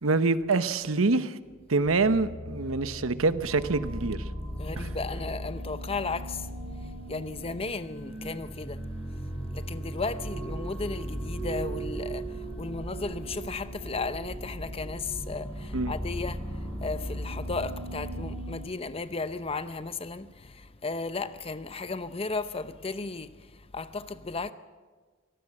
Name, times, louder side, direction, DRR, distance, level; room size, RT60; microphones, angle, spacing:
voice 1, 0.0-1.4 1.7-4.2 4.8-4.9 15.7-15.9, right 3 dB, 80° right, 1.0 m, -25 dB
sound 1, 1.8-18.6, right 1 dB, 5° left, 7.9 m, -37 dB
voice 2, 4.6-6.5 7.1-8.8 9.5-12.3 12.6-16.4 16.8-23.3 23.7-24.5, left 3 dB, 30° left, 0.7 m, -34 dB
24.0 x 18.0 x 7.6 m
head